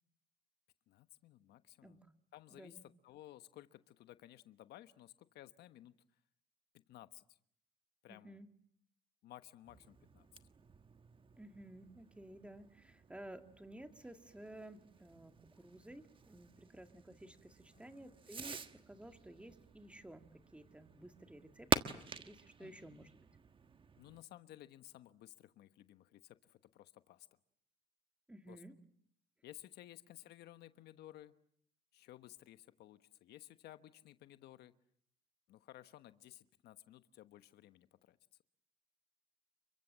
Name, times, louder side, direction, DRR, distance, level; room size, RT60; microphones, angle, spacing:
voice 1, 0.9-2.0 2.3-6.0 6.9-7.2 8.0-8.4 9.2-10.3 17.7-18.1 22.6-23.1 24.0-27.3 28.5-28.6 29.4-31.3 31.9-34.7 35.5-38.2, left 14 dB, 75° left, 12 dB, 1.2 m, -57 dB
voice 2, 2.5-2.8 8.1-8.5 11.4-21.8 22.1-23.1 28.3-28.8, right 1 dB, 5° right, 7 dB, 2.2 m, -54 dB
Fireworks, 9.6-24.2, right 5 dB, 30° right, 1.4 m, -45 dB
29.5 x 23.5 x 7.5 m, 0.68 s
cardioid pair, 110°, 17 cm